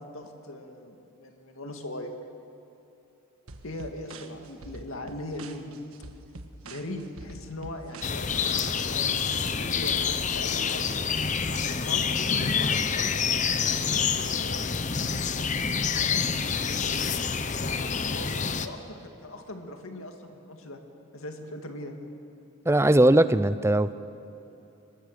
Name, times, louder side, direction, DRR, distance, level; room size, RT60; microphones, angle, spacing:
voice 1, 0.0-2.2 3.6-5.8 6.6-10.9 11.5-13.2 13.5-14.7 15.3-17.1 17.6-18.3 18.6-20.8 21.1-22.1, left 1 dB, 70° left, 4 dB, 2.1 m, -40 dB
sound 1, 3.5-8.6, right 2 dB, 80° right, 1.4 m, -45 dB
sound 2, 8.0-18.7, left 6 dB, 35° left, 0.7 m, -27 dB
voice 2, 22.7-23.9, right 1 dB, 10° right, 14 dB, 0.4 m, -20 dB
23.0 x 19.5 x 6.7 m, 2.9 s
head